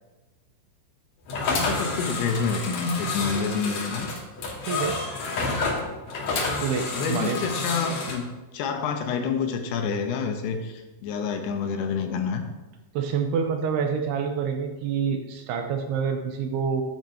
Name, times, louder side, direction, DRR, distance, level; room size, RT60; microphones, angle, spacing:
sound 1, 1.3-8.2, left 3 dB, 50° left, 2.4 m, -29 dB
voice 1, 1.4-4.1 5.3-5.6 5.9-6.0 6.3-6.6 6.9-8.2 8.5-12.4, left 5 dB, 75° left, 5 dB, 2.7 m, -28 dB
voice 2, 4.6-5.0 6.6-7.4 12.9-16.8, right 6 dB, 80° right, 5 dB, 2.5 m, -27 dB
14.0 x 9.1 x 2.8 m, 1.1 s
omnidirectional pair, 5.0 m